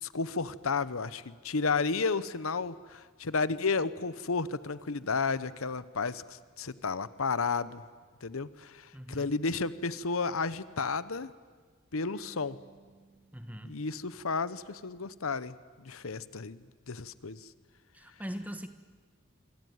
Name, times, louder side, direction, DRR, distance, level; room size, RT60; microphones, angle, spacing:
voice 1, 0.0-7.8 8.2-11.3 11.9-12.6 13.6-16.6 16.9-17.5, left 4 dB, 85° left, 16 dB, 0.9 m, -32 dB
voice 2, 8.9-9.3 13.3-13.8 17.9-18.7, equal, 5° right, 9 dB, 1.2 m, -41 dB
Marimba xylophone / Wood, 12.1-14.8, right 3 dB, 35° right, 6.7 m, -62 dB
26.5 x 23.5 x 9.5 m, 1.5 s
head